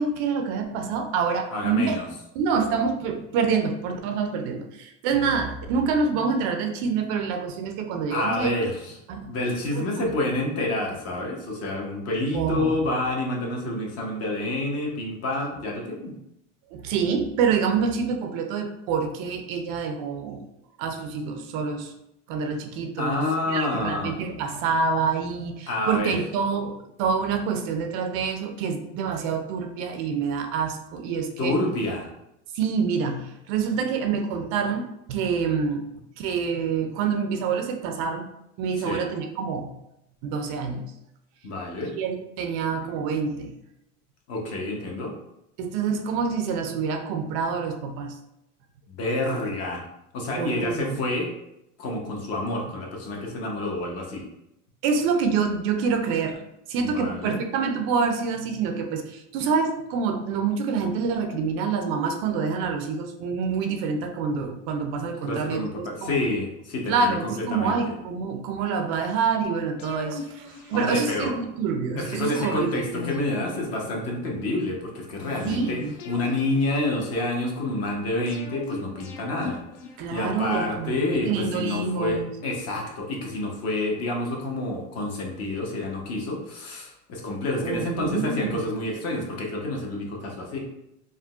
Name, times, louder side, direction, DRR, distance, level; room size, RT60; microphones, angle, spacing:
voice 1, 0.0-2.0 2.3-8.5 9.1-9.3 9.8-10.1 12.3-12.8 16.7-20.4 20.8-21.9 22.3-31.5 32.5-35.8 36.2-38.3 38.6-39.7 40.2-40.8 41.9-43.5 45.6-48.1 50.4-51.0 54.8-65.6 66.0-66.2 66.9-72.8 75.5-75.9 80.0-82.3 87.6-88.6, right 5 dB, 55° right, 4 dB, 0.5 m, -27 dB
voice 2, 1.5-2.1 8.1-8.9 9.2-16.1 23.0-24.1 25.7-26.2 31.4-32.1 38.8-39.1 41.4-41.9 44.3-45.1 48.9-49.8 50.1-51.3 51.8-54.2 56.8-57.4 65.2-67.8 70.5-71.3 72.0-75.8 76.0-79.6 80.1-90.6, left 2 dB, 40° left, 0 dB, 0.9 m, -28 dB
sound 1, 69.8-71.4 72.1-74.3 75.2-77.4 78.3-80.6 81.3-82.9 83.2-83.3, left 4 dB, 85° left, 0.6 m, -41 dB
3.7 x 2.2 x 2.4 m, 0.83 s
supercardioid pair, 120°, 37 cm